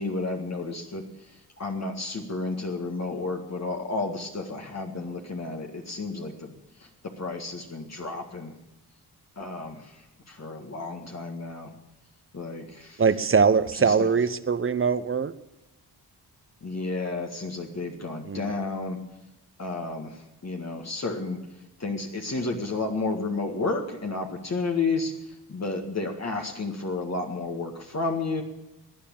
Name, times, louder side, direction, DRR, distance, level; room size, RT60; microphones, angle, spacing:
voice 1, 0.0-6.5 6.8-8.6 9.4-10.0 10.3-11.7 12.3-13.0 13.7-14.1 16.6-19.0 19.6-21.4 21.8-28.4, left 3 dB, 40° left, 2 dB, 1.9 m, -32 dB
voice 2, 13.0-15.3 18.3-18.5, right 5 dB, 30° right, 14 dB, 0.8 m, -22 dB
16.0 x 9.8 x 8.8 m, 0.94 s
cardioid pair, 80°, 40 cm